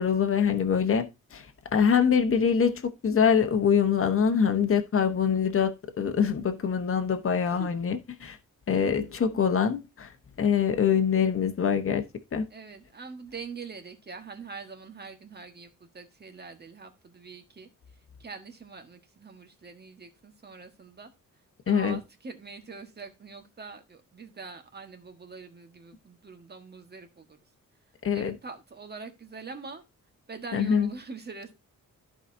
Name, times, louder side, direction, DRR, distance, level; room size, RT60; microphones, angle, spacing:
voice 1, 0.0-1.5 1.7-8.4 8.7-10.1 10.4-12.0 12.3-12.5 21.7-22.0 28.0-28.3 30.5-30.9, left 7 dB, 40° left, 1.1 m, -24 dB
voice 2, 12.5-17.7 18.2-21.1 21.7-27.4 28.1-29.8 30.3-31.5, right 4 dB, 30° right, 1.5 m, -44 dB
14.0 x 4.9 x 2.7 m
wide cardioid pair, 150°, 32 cm